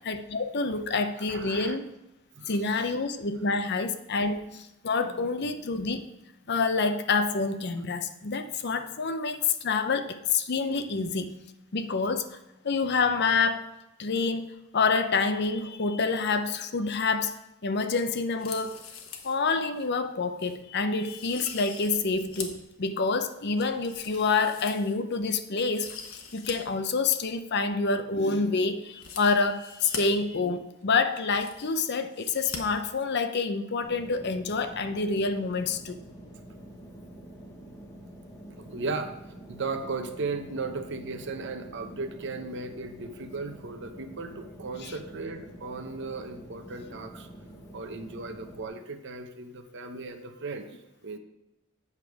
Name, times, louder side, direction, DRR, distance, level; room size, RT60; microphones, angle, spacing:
voice 1, 0.1-1.9 2.5-6.0 6.5-11.5 11.7-12.4 12.6-13.7 14.0-18.8 19.2-36.0 44.8-44.9, left 4 dB, 55° left, 10 dB, 0.6 m, -27 dB
voice 2, 1.3-1.8 2.3-2.9 5.2-5.3 38.6-39.1 39.5-47.3 47.7-50.7 51.0-51.2, right 3 dB, 60° right, 7 dB, 0.9 m, -36 dB
sound 1, 18.3-19.4 19.8-19.9 20.4-20.6 21.0-22.7 23.1-25.2 25.6-26.5 26.8-26.9 28.9-30.0 30.8-30.9 31.1-31.8 32.1-32.6 32.9-33.0, left 6 dB, 85° left, 1.2 m, -42 dB
sound 2, 33.8-48.6, right 1 dB, 15° left, 1.1 m, -47 dB
8.3 x 6.8 x 4.7 m, 0.92 s
head